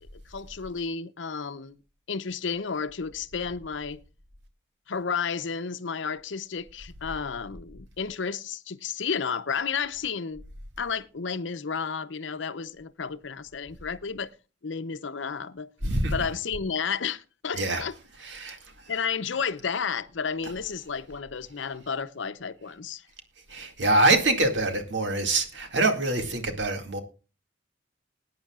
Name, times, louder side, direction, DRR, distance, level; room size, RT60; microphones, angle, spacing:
voice 1, 0.1-1.8 2.1-4.0 4.9-10.4 10.8-14.3 14.6-15.7 16.1-17.9 18.9-23.0, left 6 dB, 75° left, 0.7 m, -32 dB
voice 2, 15.8-16.2 17.5-17.9 18.2-18.9 23.5-27.0, right 2 dB, 70° right, 2.2 m, -25 dB
21.0 x 9.5 x 2.4 m
head